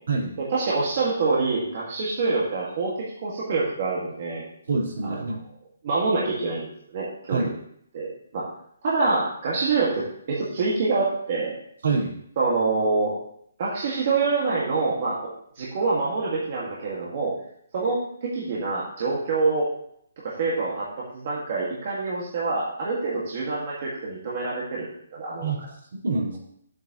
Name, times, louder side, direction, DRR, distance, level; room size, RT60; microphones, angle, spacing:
voice 1, 0.4-4.4 5.0-5.4 5.8-7.5 7.9-8.5 8.8-11.6 12.4-13.1 13.6-15.2 15.6-17.4 17.7-19.7 20.2-20.9 21.1-25.5, right 3 dB, 30° right, -6 dB, 1.8 m, -26 dB
voice 2, 4.7-5.4 7.3-7.5 11.8-12.2 25.4-25.6 25.9-26.4, right 3 dB, 60° right, -3 dB, 4.0 m, -26 dB
13.5 x 8.1 x 3.0 m, 0.70 s
hypercardioid pair, 180°, 0 cm